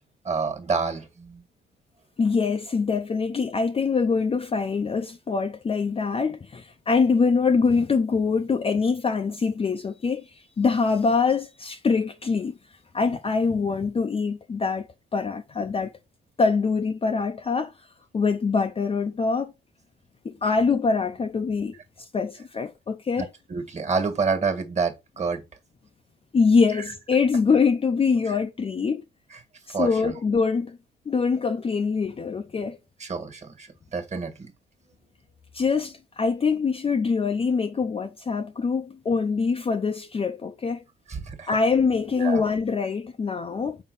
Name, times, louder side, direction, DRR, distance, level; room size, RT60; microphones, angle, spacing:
voice 1, 0.3-1.4 23.2-25.4 26.7-26.8 28.3-28.4 29.3-29.4 29.7-30.2 33.0-34.5 34.8-34.9 41.1-41.6 42.2-42.4, right 5 dB, 35° right, 1.7 m, -28 dB
voice 2, 2.2-12.5 12.9-16.0 16.4-17.9 18.1-19.5 20.2-23.3 26.3-29.0 29.7-30.8 31.1-32.8 35.5-40.8 41.5-43.8, left 5 dB, 30° left, 0.6 m, -24 dB
5.6 x 4.4 x 4.1 m
cardioid pair, 90°, 20 cm